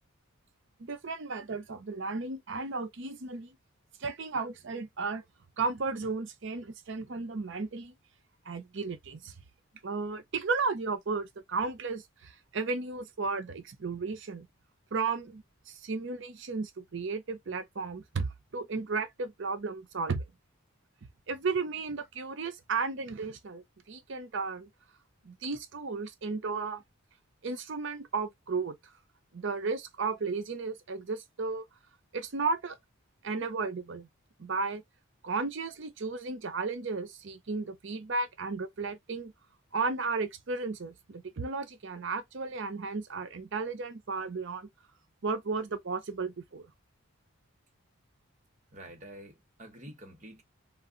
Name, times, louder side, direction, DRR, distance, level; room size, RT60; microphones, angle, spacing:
voice 1, 0.8-3.6 4.0-5.2 5.6-7.9 8.5-9.3 9.8-14.5 14.9-20.2 21.3-24.7 25.2-26.8 27.4-28.8 29.3-31.7 32.1-32.8 33.2-34.1 34.4-34.8 35.2-39.3 39.7-44.7 45.2-46.7, right 4 dB, 55° right, 0.6 m, -34 dB
voice 2, 48.7-50.4, right 1 dB, 35° right, 0.9 m, -48 dB
2.4 x 2.1 x 3.7 m
head